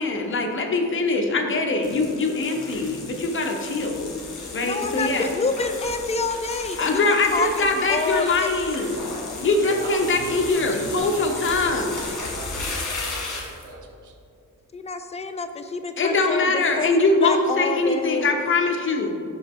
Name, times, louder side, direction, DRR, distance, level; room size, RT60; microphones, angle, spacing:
voice 1, 0.0-4.1 4.5-5.3 6.8-9.0 9.4-12.0 16.0-19.1, left 3 dB, 40° left, 2 dB, 0.7 m, -22 dB
sound 1, 1.8-13.7, left 3 dB, 70° left, 1.5 m, -35 dB
voice 2, 4.6-7.0 7.3-8.5 14.7-18.3, left 4 dB, 20° left, 7 dB, 0.3 m, -28 dB
voice 3, 9.6-14.1, right 2 dB, 70° right, 2 dB, 0.9 m, -38 dB
5.6 x 5.3 x 3.6 m, 2.5 s
wide cardioid pair, 120°, 31 cm